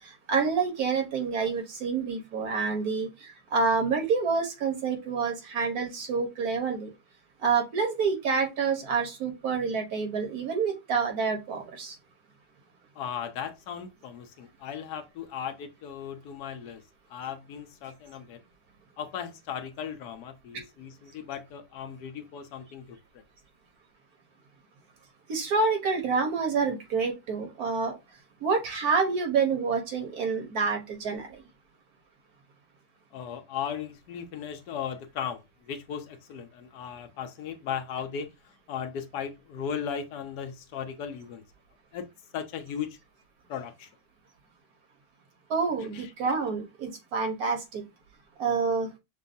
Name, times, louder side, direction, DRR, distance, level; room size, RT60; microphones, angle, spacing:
voice 1, 0.3-6.9 7.4-11.9 25.3-28.0 28.4-31.3 45.5-47.8 48.4-48.9, right 5 dB, 70° right, 1.5 m, -28 dB
voice 2, 13.0-16.8 17.1-18.4 19.0-23.2 33.1-38.3 38.7-41.4 41.9-42.1 42.3-42.9 43.5-43.9 45.9-46.1, left 8 dB, 85° left, 1.3 m, -37 dB
6.2 x 2.3 x 2.6 m
omnidirectional pair, 1.7 m